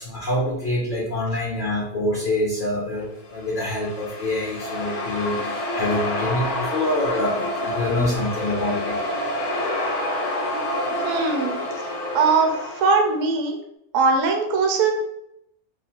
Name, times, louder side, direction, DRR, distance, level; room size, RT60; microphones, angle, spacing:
voice 1, 0.0-9.0, left 1 dB, 55° left, -5 dB, 0.5 m, -26 dB
sound 1, 3.3-13.2, left 1 dB, 85° left, 1.1 m, -28 dB
voice 2, 11.0-11.6 12.1-13.6 13.9-14.9, right 4 dB, 70° right, 3 dB, 0.9 m, -20 dB
2.8 x 2.0 x 2.8 m, 0.76 s
omnidirectional pair, 1.5 m